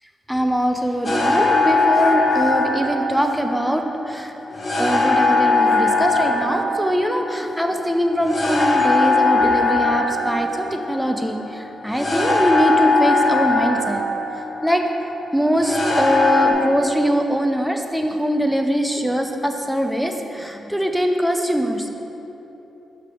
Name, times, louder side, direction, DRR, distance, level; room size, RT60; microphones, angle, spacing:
voice 1, 0.3-4.3 4.8-14.0 14.6-14.8 15.3-21.9, equal, ahead, 4 dB, 0.5 m, -22 dB
sound 1, 1.0-16.5, left 3 dB, 40° left, 1.0 m, -20 dB
5.9 x 3.4 x 5.9 m, 3.0 s
cardioid pair, 70°, 0 cm